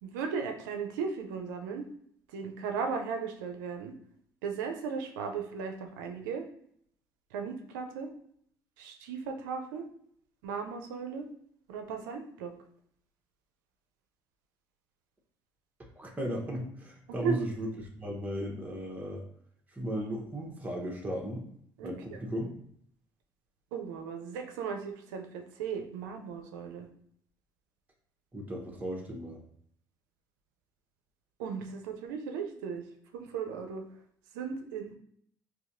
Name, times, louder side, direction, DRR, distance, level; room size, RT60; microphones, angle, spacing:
voice 1, 0.0-1.9 2.3-3.9 4.4-6.4 7.3-8.1 8.8-9.8 10.4-11.3 11.7-12.5 17.1-17.4 21.8-22.2 23.7-26.9 31.4-32.8 33.1-33.8 34.3-35.0, right 6 dB, 90° right, 4 dB, 0.5 m, -36 dB
voice 2, 16.0-19.2 19.7-21.5 21.8-22.5 28.3-29.4, equal, 15° right, -2 dB, 0.9 m, -36 dB
3.9 x 2.7 x 2.6 m, 0.66 s
hypercardioid pair, 65°, 10 cm